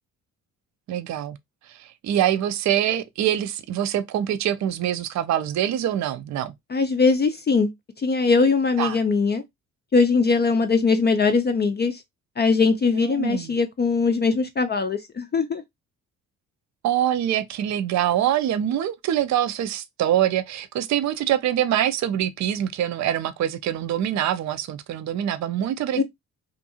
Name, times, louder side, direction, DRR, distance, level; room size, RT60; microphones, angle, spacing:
voice 1, 0.9-1.4 1.7-6.5 8.8-9.0 13.0-13.5 16.8-26.0, right 11 dB, 50° right, 0.5 m, -24 dB
voice 2, 6.7-7.7 8.0-9.4 9.9-12.0 12.4-15.6 25.9-26.0, left 4 dB, 30° left, 0.4 m, -21 dB
2.6 x 2.5 x 2.6 m
hypercardioid pair, 55°, 37 cm